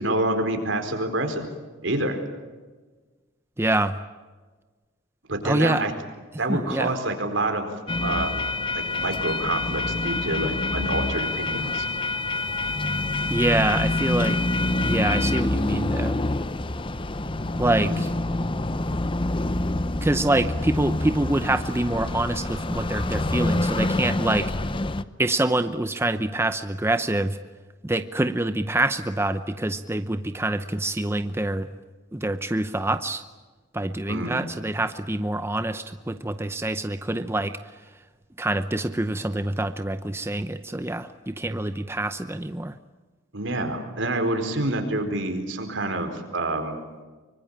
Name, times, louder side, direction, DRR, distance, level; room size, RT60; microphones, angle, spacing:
voice 1, 0.0-1.5 1.8-2.2 5.3-5.9 6.4-7.7 8.0-8.3 8.7-11.9 17.8-18.0 34.1-34.4 43.3-46.8, right 2 dB, 75° right, 6 dB, 4.5 m, -27 dB
voice 2, 3.6-3.9 5.4-5.8 6.5-6.9 13.3-14.4 14.8-16.2 17.6-18.1 20.0-24.5 25.2-27.4 27.8-31.7 32.1-33.2 33.7-37.6 38.4-42.7, right 1 dB, 15° right, 10 dB, 0.7 m, -26 dB
sound 1, 7.9-25.0, left 2 dB, 25° left, 0.8 m, -26 dB
24.5 x 24.5 x 8.9 m, 1.3 s
head